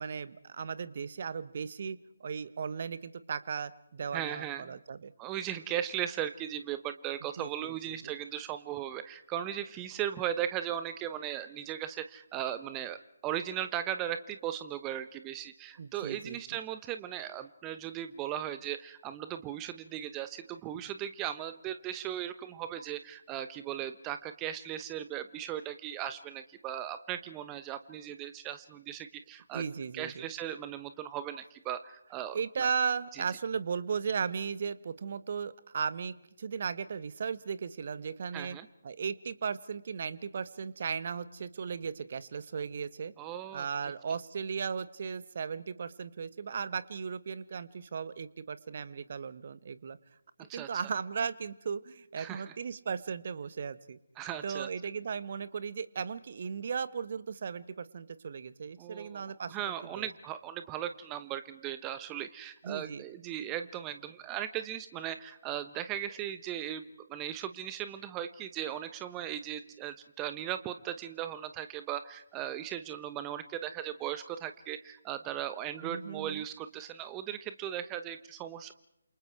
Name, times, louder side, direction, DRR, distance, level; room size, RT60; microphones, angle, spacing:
voice 1, 0.0-5.1 7.4-8.0 15.8-16.4 29.5-30.2 32.3-38.6 38.8-43.1 43.5-50.0 50.5-54.0 54.4-59.6 59.9-60.1 62.6-63.0 75.8-76.4, right 6 dB, 40° right, 15 dB, 1.3 m, -36 dB
voice 2, 4.1-4.8 5.2-29.6 29.9-32.7 33.1-33.2 38.3-38.7 43.2-43.7 50.5-50.8 52.2-52.5 54.2-54.7 58.8-78.7, right 11 dB, 15° right, 11 dB, 0.9 m, -37 dB
28.5 x 28.0 x 4.7 m, 0.78 s
figure-of-eight pair, 145°, 0 cm